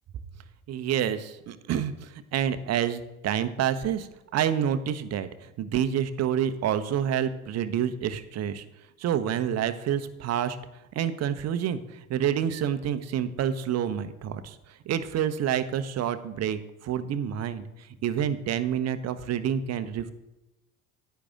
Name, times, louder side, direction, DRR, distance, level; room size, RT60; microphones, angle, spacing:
voice 1, 0.7-4.1 4.3-8.6 9.0-10.6 10.9-14.6 14.9-17.7 18.0-20.1, right 9 dB, 35° right, 12 dB, 0.9 m, -28 dB
10.5 x 9.8 x 3.6 m, 0.97 s
figure-of-eight pair, 70°, 45 cm